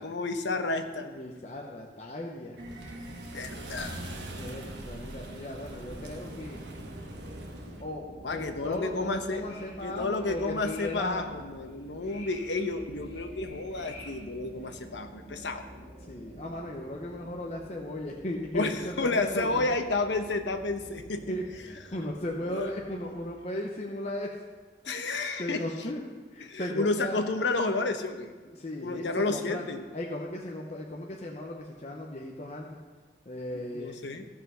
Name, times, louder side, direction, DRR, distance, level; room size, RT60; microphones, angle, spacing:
voice 1, 0.0-1.1 3.3-4.1 8.2-9.4 9.8-15.8 18.5-21.4 22.4-22.7 24.8-25.7 26.5-28.3 28.8-29.8 33.7-34.3, left 3 dB, 85° left, 7 dB, 1.0 m, -31 dB
voice 2, 1.0-2.6 4.3-6.6 7.8-8.0 8.3-11.2 16.1-19.7 21.3-24.3 24.9-25.1 25.4-26.0 26.3-27.2 28.4-29.6 29.9-32.8 33.3-34.0, left 1 dB, 35° left, -1 dB, 0.9 m, -36 dB
sound 1, 2.6-7.8, right 1 dB, 75° right, 1.3 m, -41 dB
sound 2, 5.7-23.2, equal, 25° right, 2.9 m, -49 dB
sound 3, 9.5-14.7, left 2 dB, 60° left, 2.6 m, -51 dB
15.5 x 5.7 x 5.6 m, 1.3 s
head